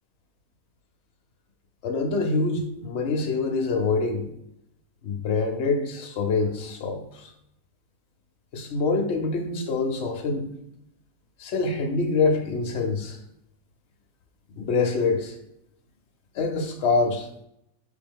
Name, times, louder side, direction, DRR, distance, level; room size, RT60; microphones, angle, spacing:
voice 1, 1.8-4.3 5.0-7.0 8.5-10.5 11.4-13.2 14.6-15.3 16.4-17.3, left 3 dB, 60° left, 4 dB, 0.8 m, -25 dB
4.4 x 3.4 x 3.5 m, 0.78 s
omnidirectional pair, 1.5 m